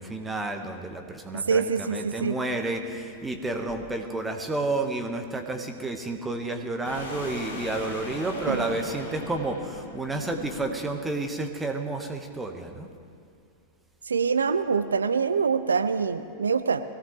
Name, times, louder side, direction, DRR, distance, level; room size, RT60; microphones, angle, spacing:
voice 1, 0.0-12.9, right 2 dB, 10° right, 4 dB, 1.4 m, -31 dB
voice 2, 1.3-2.4 8.5-8.6 14.0-16.8, right 5 dB, 75° right, 11 dB, 0.4 m, -25 dB
sound 1, 6.8-11.1, left 2 dB, 65° left, 2.2 m, -39 dB
21.0 x 16.5 x 3.3 m, 2.4 s
figure-of-eight pair, 90°, 0 cm